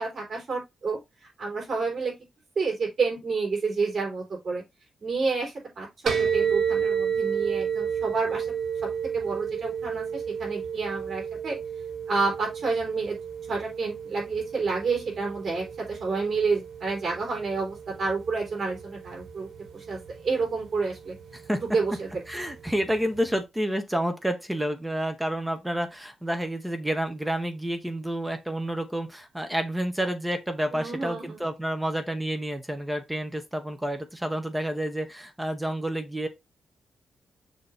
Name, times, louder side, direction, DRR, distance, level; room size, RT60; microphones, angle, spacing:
voice 1, 0.0-2.1 2.6-4.6 5.0-8.5 8.8-11.6 12.1-13.1 13.5-21.2 21.7-22.1 30.7-31.4, right 4 dB, 45° right, 4.1 m, -29 dB
sound 1, 6.1-23.4, right 7 dB, 70° right, 1.9 m, -32 dB
voice 2, 22.3-36.3, right 1 dB, 10° right, 0.9 m, -29 dB
6.6 x 2.9 x 5.0 m
wide cardioid pair, 140°, 0 cm